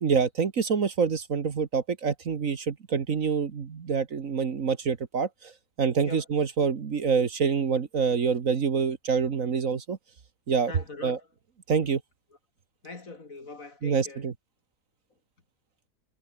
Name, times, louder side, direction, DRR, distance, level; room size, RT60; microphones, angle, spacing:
voice 1, 0.0-5.5 5.8-10.0 10.5-10.7 11.0-11.2 11.7-12.0 13.8-14.3, right 5 dB, 55° right, 1.8 m, -26 dB
voice 2, 10.7-11.3 11.8-11.9 12.8-14.3, left 3 dB, 55° left, 3.6 m, -42 dB
omnidirectional pair, 1.8 m